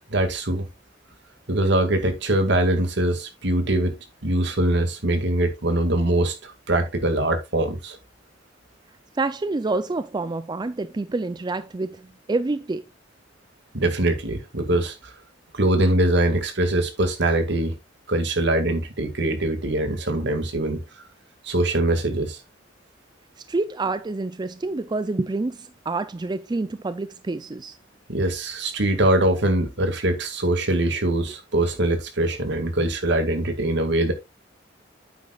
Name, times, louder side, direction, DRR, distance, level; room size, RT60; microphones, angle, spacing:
voice 1, 0.1-0.7 1.5-8.0 13.7-15.1 15.5-17.8 18.1-20.8 21.4-22.4 28.1-34.1, right 1 dB, 65° right, 2.0 m, -23 dB
voice 2, 9.1-12.8 23.5-27.8, right 3 dB, 25° right, 0.4 m, -27 dB
9.5 x 8.0 x 2.4 m
head